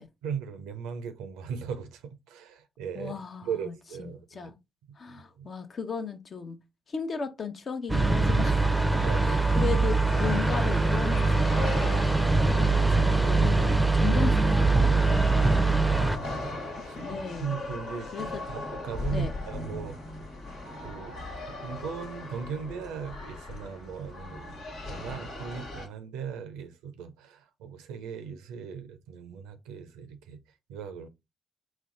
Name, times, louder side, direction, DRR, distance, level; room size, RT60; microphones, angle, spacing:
voice 1, 0.2-3.1 3.4-4.5 4.9-5.5 8.9-9.7 15.6-17.0 17.4-18.1 18.5-20.0 20.8-24.6 24.9-30.4 30.7-31.1, right 7 dB, 80° right, 0.5 m, -38 dB
voice 2, 2.9-4.6 5.0-6.6 6.9-8.9 9.2-14.9 16.9-17.5 18.1-18.4 19.1-19.3, left 5 dB, 55° left, 0.7 m, -36 dB
sound 1, 7.9-16.2, right 3 dB, 10° right, 0.5 m, -23 dB
sound 2, 8.0-25.9, left 1 dB, 75° left, 1.4 m, -37 dB
4.2 x 2.2 x 3.7 m
hypercardioid pair, 40°, 0 cm